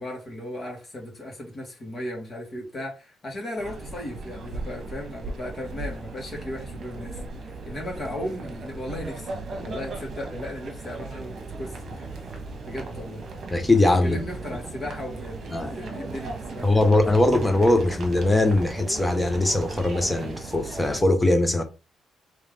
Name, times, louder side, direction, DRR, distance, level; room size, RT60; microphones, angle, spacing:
voice 1, 0.0-12.1 12.6-13.2 14.0-16.8, left 1 dB, 40° left, 1.9 m, -36 dB
sound 1, 3.6-21.0, right 3 dB, 55° right, 1.1 m, -37 dB
voice 2, 13.5-14.2 15.5-15.7 16.6-21.6, left 2 dB, 15° left, 1.0 m, -21 dB
3.6 x 3.2 x 3.5 m
cardioid pair, 90°, 0 cm